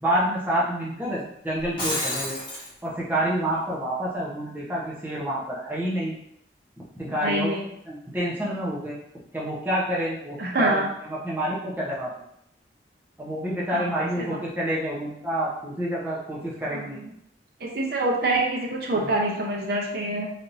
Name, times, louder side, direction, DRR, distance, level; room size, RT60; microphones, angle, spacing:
voice 1, 0.0-2.4 2.8-6.2 7.0-7.5 7.9-9.0 9.3-10.8 11.2-12.1 13.2-17.0 18.9-19.1, right 1 dB, 10° right, -6 dB, 0.8 m, -28 dB
Shatter, 1.6-2.7, left 1 dB, 25° left, 1.1 m, -29 dB
voice 2, 7.2-7.6 10.4-10.9 13.7-14.4 16.7-17.1 17.6-20.3, right 2 dB, 60° right, -1 dB, 0.6 m, -26 dB
3.4 x 2.8 x 2.6 m, 0.77 s
head